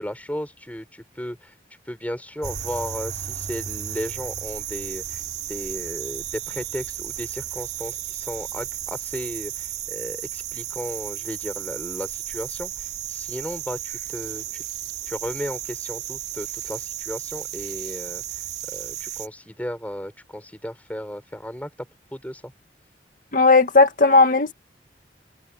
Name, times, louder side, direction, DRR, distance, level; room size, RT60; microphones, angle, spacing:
voice 1, 0.0-1.5 1.9-5.2 5.5-14.6 15.1-18.2 18.7-21.7 22.1-22.5, equal, 10° left, 6.2 m, -34 dB
sound 1, 2.4-19.3, right 11 dB, 60° right, 4.0 m, -33 dB
voice 2, 23.3-24.5, left 3 dB, 45° left, 2.1 m, -15 dB
open air
head